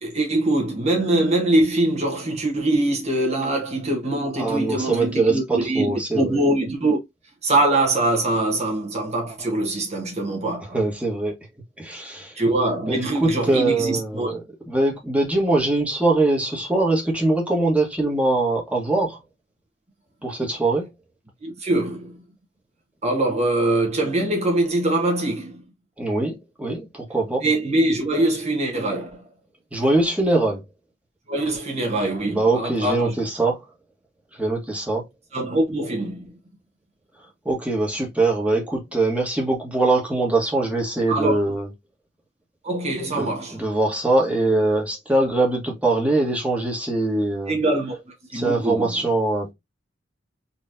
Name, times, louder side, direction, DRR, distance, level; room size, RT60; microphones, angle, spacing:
voice 1, 0.0-7.0 7.4-10.6 12.4-14.3 21.4-22.2 23.0-25.6 27.4-29.3 31.3-33.1 35.3-36.3 41.1-41.6 42.6-43.6 47.5-48.0 48.3-49.0, right 2 dB, 35° right, 1.3 m, -23 dB
voice 2, 4.4-6.4 10.7-11.3 11.8-12.3 12.9-14.4 14.7-19.2 20.2-20.9 26.0-27.4 29.7-30.6 32.3-33.6 34.4-35.0 37.4-41.7 43.2-47.6 48.3-49.5, right 2 dB, 5° right, 1.3 m, -22 dB
4.0 x 3.1 x 2.6 m
head